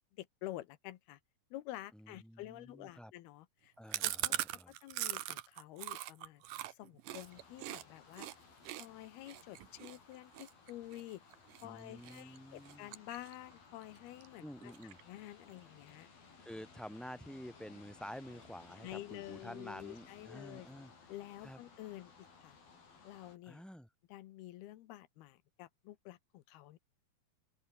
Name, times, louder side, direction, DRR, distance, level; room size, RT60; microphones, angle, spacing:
voice 1, 0.1-1.2 1.5-3.7 4.0-6.4 6.7-8.3 8.8-11.2 11.6-14.7 15.1-16.4 18.8-20.7 21.1-22.6 23.0-23.6 24.1-26.8, left 15 dB, 90° left, 3.1 m, -49 dB
voice 2, 1.9-3.1 3.8-4.7 11.6-12.9 14.4-15.0 16.4-20.9 21.4-21.6 23.5-23.9, equal, ahead, 4.5 m, -49 dB
Chewing mastication, 3.9-7.8 8.2-8.4 8.7-11.7 12.0-12.4 12.7-13.5 13.8-13.9 14.2-14.3 14.6-15.2, right 14 dB, 70° right, 2.5 m, -40 dB
sound 1, 7.1-23.4, left 5 dB, 70° left, 7.8 m, -60 dB
omnidirectional pair, 4.4 m